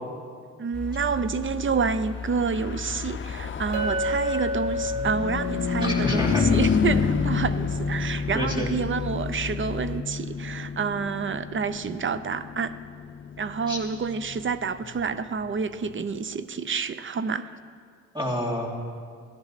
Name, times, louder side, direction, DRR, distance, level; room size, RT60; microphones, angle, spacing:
voice 1, 0.6-12.7 13.4-17.5, right 5 dB, 40° right, 13 dB, 0.6 m, -28 dB
sound 1, 0.7-10.0, left 5 dB, 5° left, 0.8 m, -37 dB
Car passing by / Truck, 2.2-15.9, left 6 dB, 40° left, 0.6 m, -30 dB
Chink clink, 3.7-8.0, left 1 dB, 75° right, 1.2 m, -32 dB
voice 2, 5.8-6.8 8.3-8.7 13.7-13.8 18.1-18.7, equal, 15° right, -2 dB, 2.9 m, -29 dB
16.5 x 11.0 x 4.1 m, 2.1 s
cardioid pair, 65°, 31 cm